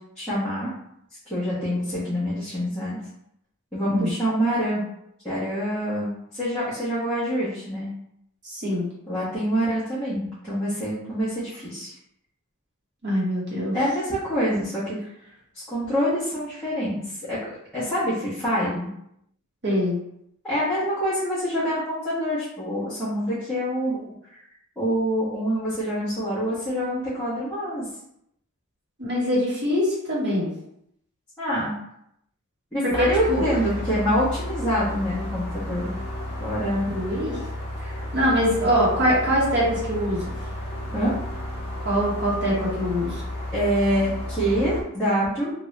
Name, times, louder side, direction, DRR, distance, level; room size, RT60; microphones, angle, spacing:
voice 1, 0.2-0.7 1.3-3.0 3.7-4.8 5.2-7.9 9.1-11.9 13.7-15.0 15.5-17.4 17.7-18.9 20.4-24.1 24.8-27.8 31.4-31.7 32.7-35.9 36.4-36.8 40.9-41.1 43.5-45.5, equal, 5° left, -13 dB, 1.1 m, -26 dB
voice 2, 8.4-8.9 13.0-13.7 19.6-20.0 29.0-30.5 32.8-33.4 36.9-37.4 37.8-40.3 41.8-43.2, equal, 50° right, -6 dB, 1.3 m, -23 dB
sound 1, 32.9-44.8, left 1 dB, 30° left, 1.0 m, -32 dB
3.0 x 2.6 x 3.2 m, 0.77 s
head